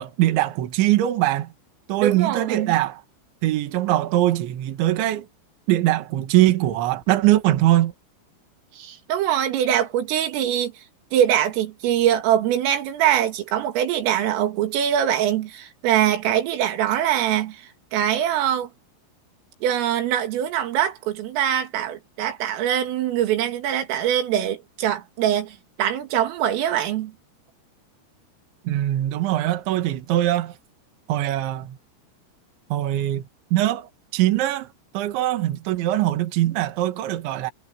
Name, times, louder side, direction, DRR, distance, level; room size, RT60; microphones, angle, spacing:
voice 1, 0.0-1.5 1.9-3.0 3.4-5.3 5.7-7.9 28.7-30.6 31.1-31.8 32.7-33.2 33.5-37.5, right 14 dB, 70° right, 4.0 m, -22 dB
voice 2, 2.0-2.7 8.7-10.7 11.1-18.7 19.6-27.1, right 10 dB, 85° right, 4.8 m, -23 dB
omnidirectional pair, 5.7 m